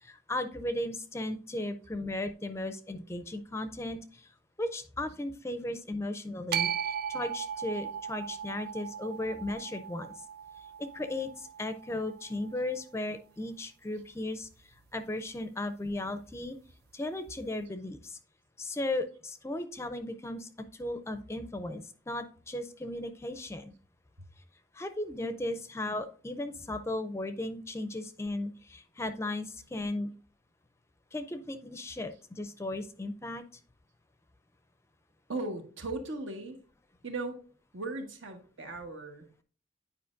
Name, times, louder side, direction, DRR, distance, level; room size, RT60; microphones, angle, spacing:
voice 1, 0.0-4.3 4.6-10.2 10.6-10.7 10.9-14.5 14.9-16.6 16.9-18.2 18.6-23.7 24.7-30.1 31.1-33.4, left 1 dB, 15° left, 9 dB, 0.4 m, -36 dB
sound 1, 6.5-12.7, right 9 dB, 55° right, 0.3 m, -37 dB
voice 2, 35.3-36.6 37.0-37.4 37.7-39.4, right 2 dB, 85° right, 4 dB, 1.2 m, -38 dB
9.4 x 4.8 x 2.5 m, 0.40 s
head